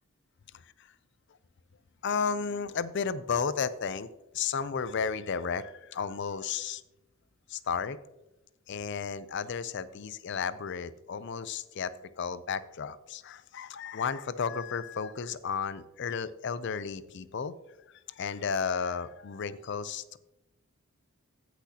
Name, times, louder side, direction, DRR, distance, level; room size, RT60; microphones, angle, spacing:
voice 1, 2.0-4.1 4.3-6.8 7.5-8.0 8.7-11.9 12.2-17.5 18.2-20.2, left 6 dB, 55° left, 15 dB, 0.5 m, -33 dB
16.0 x 6.2 x 2.8 m, 0.97 s
head